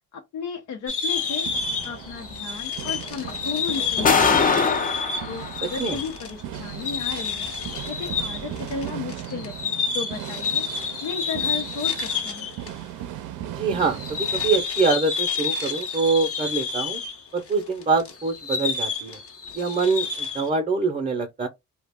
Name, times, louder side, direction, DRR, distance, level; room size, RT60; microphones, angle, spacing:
voice 1, 0.1-1.5 1.8-4.8 5.3-7.5 7.9-10.7 11.0-12.5, left 5 dB, 80° left, 0.7 m, -34 dB
sound 1, 0.9-12.7 13.0-13.1 13.8-20.5, left 5 dB, 50° left, 0.9 m, -29 dB
sound 2, 1.1-14.6, right 11 dB, 85° right, 0.5 m, -38 dB
sound 3, 2.3-2.4 3.3-3.4 3.8-5.9 7.4-7.6 8.5-8.6, left 5 dB, 30° left, 0.5 m, -22 dB
voice 2, 13.5-17.0 17.3-19.2 19.5-21.5, right 4 dB, 25° right, 0.6 m, -24 dB
2.3 x 2.2 x 3.4 m
cardioid pair, 90°, 30 cm